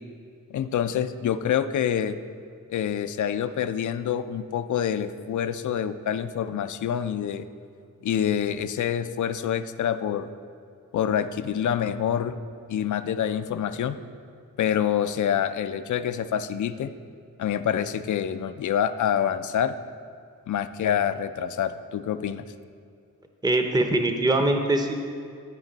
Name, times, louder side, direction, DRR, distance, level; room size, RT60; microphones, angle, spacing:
voice 1, 0.5-2.2 2.7-7.5 8.0-10.3 10.9-12.4 12.7-14.0 14.6-16.9 17.4-19.7 20.5-22.4, left 9 dB, 60° left, 11 dB, 0.5 m, -26 dB
voice 2, 23.4-24.9, right 2 dB, 10° right, 5 dB, 0.8 m, -22 dB
11.5 x 5.1 x 4.0 m, 2.3 s
cardioid pair, 55°, 34 cm